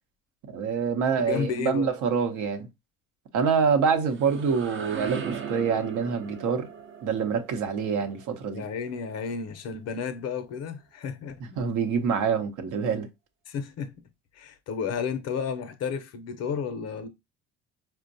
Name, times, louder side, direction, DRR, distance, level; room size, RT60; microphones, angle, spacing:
voice 1, 0.5-2.7 3.3-6.7 7.0-8.6 11.6-13.1, right 6 dB, 65° right, 0.8 m, -26 dB
voice 2, 1.2-1.9 8.5-11.4 13.5-13.9 14.3-17.1, left 6 dB, 50° left, 0.6 m, -32 dB
sound 1, 3.8-9.6, right 7 dB, 35° right, 0.6 m, -39 dB
4.4 x 2.2 x 2.6 m
supercardioid pair, 75°, 34 cm